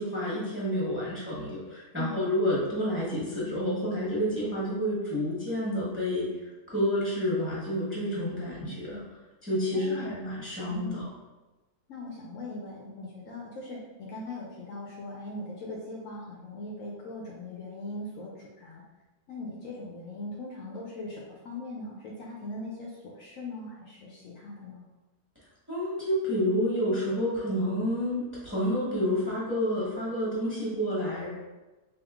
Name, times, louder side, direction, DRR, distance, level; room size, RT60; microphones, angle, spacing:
voice 1, 0.0-6.3 6.7-9.0 9.4-11.0 25.7-31.3, equal, 10° right, -7 dB, 1.0 m, -29 dB
voice 2, 8.5-9.1 9.7-11.0 11.9-18.8 19.3-24.9, left 2 dB, 65° left, -3 dB, 0.9 m, -40 dB
3.6 x 2.7 x 3.6 m, 1.1 s
omnidirectional pair, 1.6 m